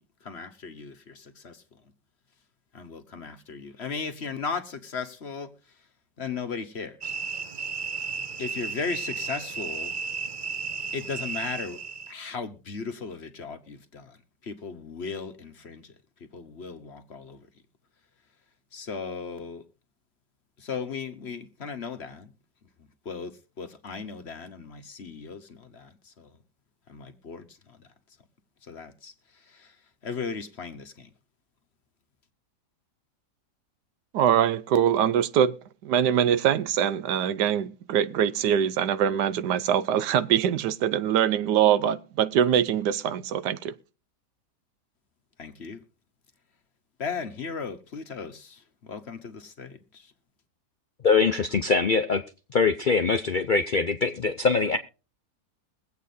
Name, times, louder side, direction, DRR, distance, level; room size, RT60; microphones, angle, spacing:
voice 1, 0.0-1.8 2.7-5.8 6.2-7.1 8.4-9.9 10.9-11.8 12.1-17.5 18.7-19.6 20.6-22.3 23.0-26.4 26.9-27.9 28.6-29.8 30.0-31.1 45.4-45.8 47.0-50.1, left 5 dB, 45° left, 1.2 m, -37 dB
sound 1, 7.0-12.1, right 5 dB, 35° right, 0.9 m, -34 dB
voice 2, 34.1-35.5 35.8-43.7, right 9 dB, 80° right, 1.3 m, -23 dB
voice 3, 51.0-52.2 52.5-54.8, left 4 dB, 85° left, 0.4 m, -23 dB
22.5 x 8.3 x 2.7 m
omnidirectional pair, 1.8 m